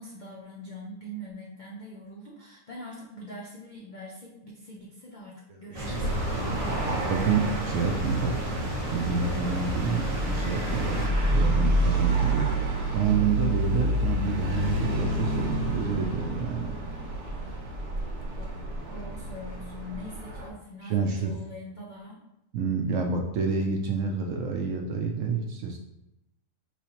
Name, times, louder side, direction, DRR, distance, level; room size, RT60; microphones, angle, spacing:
voice 1, 0.0-6.9 18.4-18.5 18.9-22.2, left 1 dB, 70° left, -4 dB, 0.4 m, -43 dB
sound 1, 5.7-11.1, right 1 dB, 25° right, 0.9 m, -33 dB
voice 2, 5.7-6.7 7.1-8.3 8.9-11.0 11.3-12.4 12.9-16.8 20.8-21.3 22.5-25.8, right 5 dB, 70° right, 1 dB, 0.8 m, -28 dB
sound 2, 6.0-20.5, right 1 dB, 90° right, 1.4 m, -29 dB
5.4 x 3.1 x 2.9 m, 0.89 s
omnidirectional pair, 1.7 m